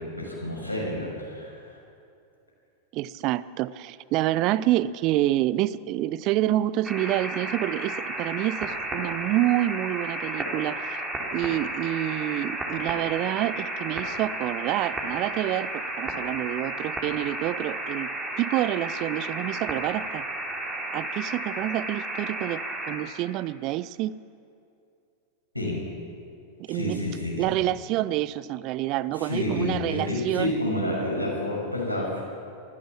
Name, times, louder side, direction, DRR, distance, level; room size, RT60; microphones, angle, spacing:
voice 1, 0.0-1.8 25.5-25.8 26.7-27.5 29.1-32.2, left 1 dB, 90° left, -2 dB, 6.2 m, -29 dB
voice 2, 2.9-11.0 11.3-18.1 18.4-20.3 20.9-22.6 22.9-24.1 26.7-27.0 27.4-30.5, right 14 dB, 40° right, 19 dB, 0.5 m, -27 dB
sound 1, 6.8-23.0, right 1 dB, 15° right, 3.9 m, -33 dB
23.5 x 15.5 x 7.4 m, 2.5 s
figure-of-eight pair, 90°, 0 cm